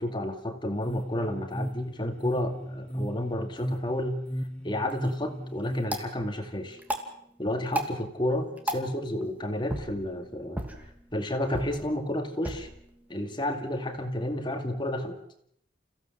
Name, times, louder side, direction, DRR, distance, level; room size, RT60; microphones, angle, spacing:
voice 1, 0.0-4.2 4.6-6.8 7.4-10.6 11.1-12.7 13.1-15.2, left 1 dB, 25° left, 5 dB, 2.3 m, -31 dB
sound 1, 0.7-6.0, equal, 5° left, 1.2 m, -35 dB
sound 2, 4.7-14.8, right 1 dB, 10° right, 2.7 m, -39 dB
29.0 x 16.5 x 8.0 m, 0.73 s
head